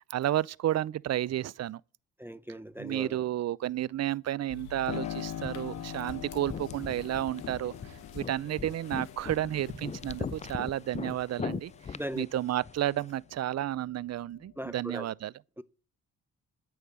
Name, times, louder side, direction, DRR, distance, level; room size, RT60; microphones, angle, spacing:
voice 1, 0.1-1.8 2.8-11.7 12.1-15.3, right 13 dB, 45° right, 0.5 m, -32 dB
voice 2, 2.2-3.2 11.9-12.2 14.6-15.1 15.6-15.7, equal, 5° right, 0.8 m, -38 dB
sound 1, 4.5-12.2, left 6 dB, 75° left, 1.6 m, -48 dB
Piano, 4.9-13.3 13.7-14.8, left 11 dB, 60° left, 0.8 m, -44 dB
sound 2, 4.9-13.1, left 6 dB, 20° left, 0.4 m, -41 dB
9.3 x 8.6 x 6.2 m
hypercardioid pair, 50°, 37 cm